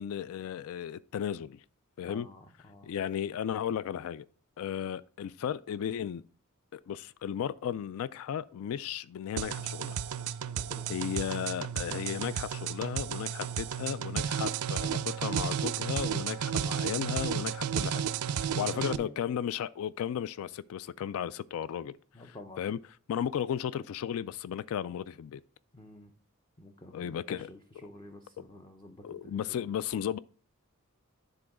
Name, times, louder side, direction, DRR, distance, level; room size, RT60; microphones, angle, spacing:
voice 1, 0.0-1.6 2.0-2.3 2.8-4.2 4.6-6.2 6.7-10.0 10.9-18.0 18.4-22.0 22.2-22.8 23.1-25.4 26.9-27.5 29.0-30.2, left 9 dB, 70° left, 0.3 m, -35 dB
voice 2, 2.1-2.9 10.6-11.0 18.3-19.1 22.1-22.6 25.7-26.1 26.6-29.7, left 1 dB, 20° left, 0.6 m, -49 dB
sound 1, 9.4-19.0, right 8 dB, 90° right, 0.4 m, -33 dB
10.0 x 3.8 x 4.8 m
head